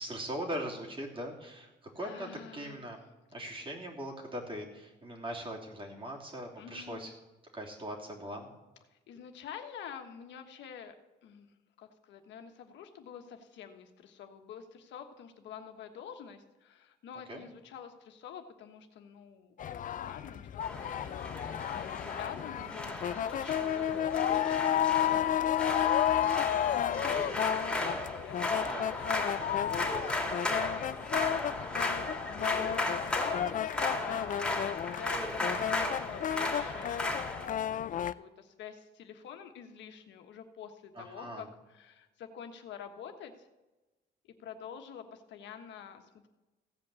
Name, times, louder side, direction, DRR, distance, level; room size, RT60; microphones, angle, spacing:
voice 1, 0.0-3.0 3.3-7.1 7.5-8.5 17.3-17.4 24.6-24.8 28.5-28.9 40.9-41.5, equal, 30° right, -1 dB, 3.2 m, -40 dB
voice 2, 2.0-2.8 6.6-7.1 8.9-11.5 11.8-27.9 28.2-30.5 31.5-32.0 32.2-33.5 33.9-37.9 38.2-43.5 44.4-46.3, left 7 dB, 80° left, 6 dB, 1.3 m, -47 dB
sound 1, 19.6-38.1, left 10 dB, 45° left, 0.4 m, -32 dB
sound 2, 20.6-37.5, left 2 dB, 5° left, 2.5 m, -35 dB
16.0 x 5.3 x 8.3 m, 1.1 s
cardioid pair, 100°, 19 cm